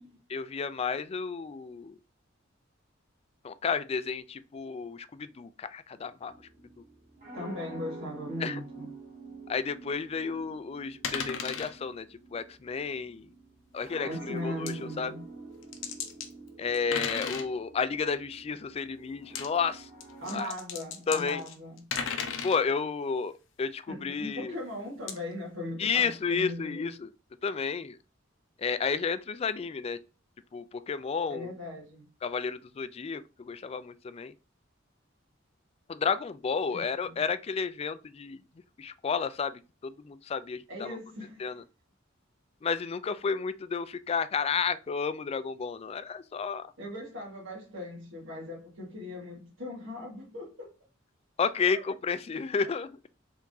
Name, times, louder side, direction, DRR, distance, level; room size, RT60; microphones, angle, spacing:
voice 1, 0.3-1.9 3.4-6.3 8.4-8.6 9.5-12.1 12.3-13.3 13.7-15.1 16.6-19.9 20.3-20.5 21.1-21.4 22.4-23.3 23.6-24.5 25.8-27.1 27.4-28.0 28.6-30.0 30.5-31.5 32.2-34.3 35.9-38.4 38.8-40.9 41.4-41.6 42.6-46.6 51.4-53.0, left 5 dB, 30° left, 0.3 m, -31 dB
sound 1, 6.3-20.4, right 3 dB, 45° right, 2.3 m, -48 dB
voice 2, 7.3-8.9 14.0-15.3 20.2-21.9 23.9-26.9 31.3-32.1 36.7-37.2 40.7-41.5 46.8-50.7 51.6-51.8 52.6-52.7, left 1 dB, 75° right, 1.9 m, -39 dB
sound 2, 11.0-11.7 13.8-13.9 14.7-14.8 15.6-16.3 16.7-17.5 19.2-19.5 20.0-22.6 25.1-25.2, left 6 dB, 80° left, 0.8 m, -34 dB
4.6 x 3.6 x 2.6 m
head